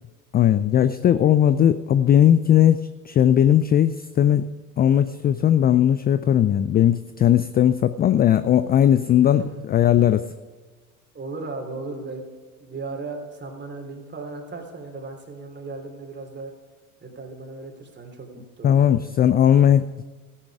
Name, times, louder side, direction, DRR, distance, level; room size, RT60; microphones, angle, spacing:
voice 1, 0.3-4.5 4.8-10.3 18.6-20.0, left 10 dB, 20° left, 13 dB, 0.4 m, -18 dB
voice 2, 9.2-9.6 11.1-12.3 12.6-16.5 17.0-19.1, right 3 dB, 25° right, 3 dB, 3.3 m, -36 dB
14.5 x 10.0 x 4.9 m, 1.4 s
hypercardioid pair, 80°, 44 cm